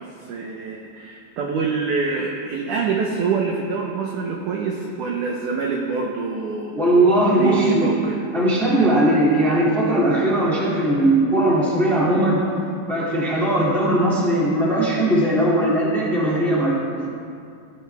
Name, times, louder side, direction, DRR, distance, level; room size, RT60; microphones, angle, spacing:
voice 1, 0.0-6.7 7.3-8.3, right 4 dB, 80° right, 0 dB, 1.8 m, -25 dB
voice 2, 6.7-7.9 8.3-12.4 12.9-17.1, right 1 dB, ahead, -6 dB, 1.3 m, -19 dB
17.5 x 12.0 x 3.5 m, 2.4 s
omnidirectional pair, 4.8 m